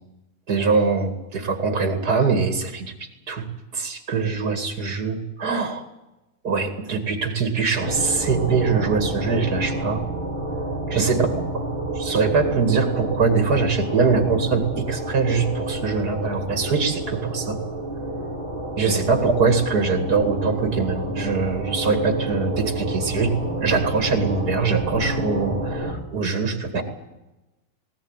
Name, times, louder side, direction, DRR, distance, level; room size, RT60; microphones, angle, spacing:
voice 1, 0.5-2.9 3.3-3.4 3.7-5.8 6.4-10.0 10.9-11.3 11.5-11.6 12.0-17.6 18.8-23.3 23.6-26.8, right 4 dB, 80° right, 6 dB, 2.9 m, -22 dB
sound 1, 7.8-25.9, right 1 dB, 35° right, 3.6 m, -29 dB
19.0 x 19.0 x 9.0 m, 1.0 s
omnidirectional pair, 1.6 m